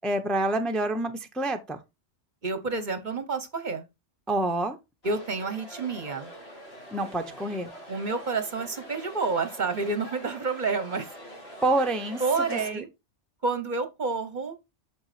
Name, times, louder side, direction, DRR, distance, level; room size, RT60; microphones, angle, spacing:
voice 1, 0.0-1.8 4.3-4.8 6.9-7.7 11.6-12.2 12.5-12.8, right 2 dB, ahead, 0.6 m, -27 dB
voice 2, 2.4-3.9 5.0-6.3 7.9-11.1 11.5-11.6 12.2-12.9 13.4-14.6, right 4 dB, 45° right, 0.9 m, -29 dB
sound 1, 5.0-12.7, equal, 60° left, 2.7 m, -44 dB
6.2 x 6.0 x 4.2 m
omnidirectional pair, 1.2 m